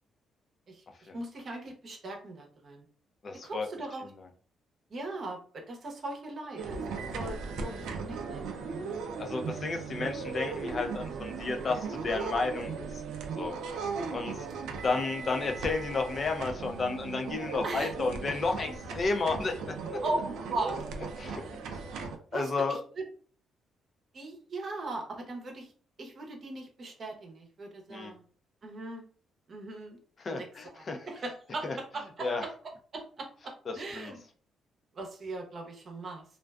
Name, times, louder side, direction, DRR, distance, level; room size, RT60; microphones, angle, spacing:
voice 1, 1.1-2.8 3.4-4.1 4.9-8.5 17.6-17.9 20.0-21.2 21.7-21.8 22.3-23.0 24.1-25.7 26.0-28.2 28.6-29.0 29.5-30.0 30.3-30.5 30.7-32.5 32.9-34.2 34.9-36.2, right 2 dB, 50° right, 2 dB, 0.7 m, -39 dB
voice 2, 3.2-3.7 4.2-4.3 7.7-7.8 9.2-13.0 13.3-13.6 14.1-14.5 14.8-20.0 21.2-21.4 21.7-21.8 22.3-22.8 27.9-28.1 30.2-31.1 31.6-31.8 32.2-32.5 33.7-34.1, left 3 dB, 45° left, 5 dB, 0.5 m, -32 dB
sound 1, 6.6-22.2, right 4 dB, 85° right, 0.4 m, -37 dB
2.4 x 2.3 x 2.2 m, 0.43 s
cardioid pair, 90°, 0 cm